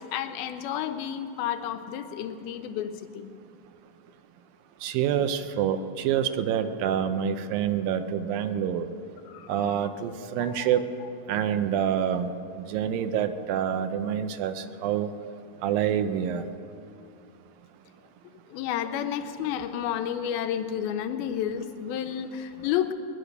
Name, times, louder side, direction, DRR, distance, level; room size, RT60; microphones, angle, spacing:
voice 1, 0.0-3.3 9.3-9.5 9.8-9.9 10.4-10.7 18.5-22.9, left 10 dB, 90° left, 7 dB, 2.6 m, -31 dB
voice 2, 4.8-8.9 9.5-10.8 11.3-12.3 12.6-15.1 15.6-16.4, right 9 dB, 80° right, 9 dB, 2.3 m, -27 dB
20.5 x 11.0 x 6.6 m, 2.7 s
omnidirectional pair, 4.3 m